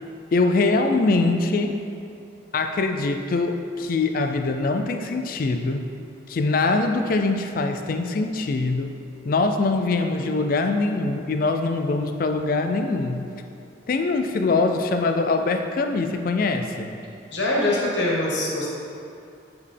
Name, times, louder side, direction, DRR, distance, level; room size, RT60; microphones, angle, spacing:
voice 1, 0.3-1.8 2.5-5.8 6.3-8.9 9.2-13.3 13.9-17.0, left 3 dB, 50° left, 6 dB, 0.3 m, -23 dB
voice 2, 17.3-18.7, left 1 dB, 75° left, -4 dB, 1.2 m, -23 dB
8.5 x 3.5 x 3.3 m, 2.5 s
head